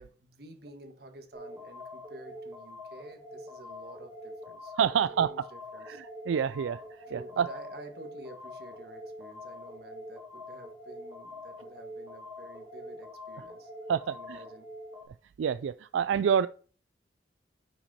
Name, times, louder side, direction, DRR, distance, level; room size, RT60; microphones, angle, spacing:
voice 1, 0.0-6.0 7.1-14.7, right 1 dB, 55° right, 1.5 m, -50 dB
sound 1, 1.3-15.1, left 1 dB, 15° right, 2.3 m, -45 dB
voice 2, 4.8-5.3 5.9-6.8 7.1-7.5 13.9-14.4 15.4-16.5, right 7 dB, 85° right, 0.3 m, -27 dB
9.3 x 6.0 x 4.2 m
head